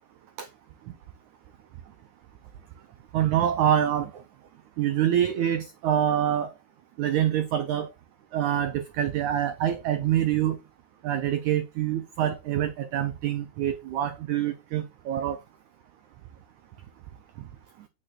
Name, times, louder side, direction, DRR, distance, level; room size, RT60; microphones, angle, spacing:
voice 1, 3.1-4.2 4.8-6.5 7.0-7.9 8.3-10.6 11.0-15.4, right 10 dB, 85° right, 1.7 m, -26 dB
8.8 x 6.1 x 4.2 m
omnidirectional pair, 4.5 m